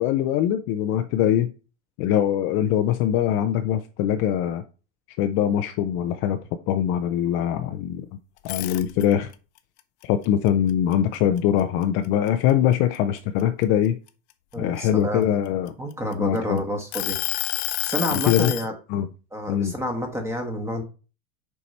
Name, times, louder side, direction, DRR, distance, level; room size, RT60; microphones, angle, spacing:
voice 1, 0.0-1.5 2.0-4.6 5.2-6.4 6.7-8.0 8.4-9.3 10.0-14.0 14.6-15.7 16.2-16.6 18.1-18.5 18.9-19.1 19.5-19.7, left 10 dB, 35° left, 7 dB, 0.5 m, -22 dB
sound 1, 8.4-9.3 9.8-11.6 12.0-12.3 12.7-14.5 15.2-16.4 16.9-18.7, left 16 dB, 65° left, 0.9 m, -29 dB
voice 2, 14.5-15.3 15.8-17.2 17.8-18.7 19.3-20.8, equal, 5° right, 4 dB, 1.2 m, -29 dB
7.1 x 4.7 x 4.1 m, 0.33 s
supercardioid pair, 165°, 36 cm